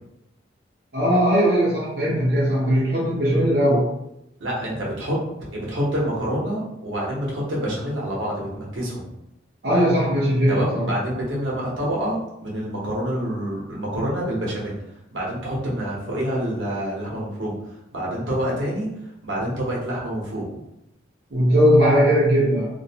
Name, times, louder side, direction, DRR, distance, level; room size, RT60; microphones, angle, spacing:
voice 1, 0.9-3.8 9.6-10.9 21.3-22.7, equal, 55° right, -7 dB, 0.6 m, -19 dB
voice 2, 4.4-5.2 5.5-9.0 10.5-14.8 15.1-17.6 17.9-18.9 19.2-20.4, equal, 85° right, -4 dB, 0.8 m, -27 dB
2.5 x 2.0 x 2.7 m, 0.85 s
head